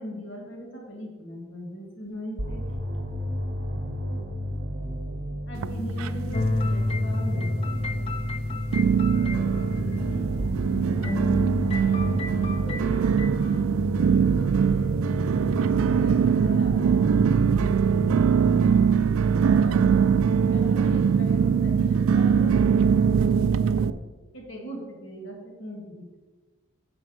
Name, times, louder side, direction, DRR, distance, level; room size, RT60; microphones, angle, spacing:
voice 1, 0.0-2.6 5.5-7.5 15.3-23.9 24.3-26.1, equal, 65° left, 0 dB, 1.9 m, -40 dB
sound 1, 2.4-18.4, equal, 55° right, 0.8 m, -33 dB
sound 2, 5.5-6.5 6.8-7.4 7.9-8.0 8.7-23.9, right 6 dB, 85° right, 0.3 m, -22 dB
sound 3, 6.3-10.7 11.0-13.7, left 2 dB, 30° left, 0.4 m, -30 dB
voice 2, 9.0-11.3 12.0-13.0 13.4-14.9, equal, 85° left, -4 dB, 1.6 m, -42 dB
6.2 x 4.4 x 6.3 m, 1.3 s
head